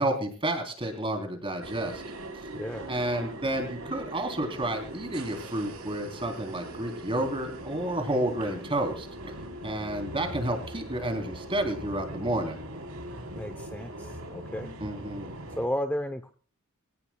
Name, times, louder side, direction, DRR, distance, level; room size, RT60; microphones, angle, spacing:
voice 1, 0.0-2.0 2.3-2.5 2.9-9.3 9.6-12.6 14.8-15.3, right 1 dB, 25° right, 5 dB, 3.5 m, -30 dB
sound 1, 1.6-15.7, right 1 dB, 90° right, 3.7 m, -41 dB
voice 2, 2.5-2.9 9.6-9.9 13.3-14.7 15.6-16.3, equal, 10° left, 8 dB, 0.7 m, -33 dB
24.0 x 18.0 x 2.3 m, 0.41 s
head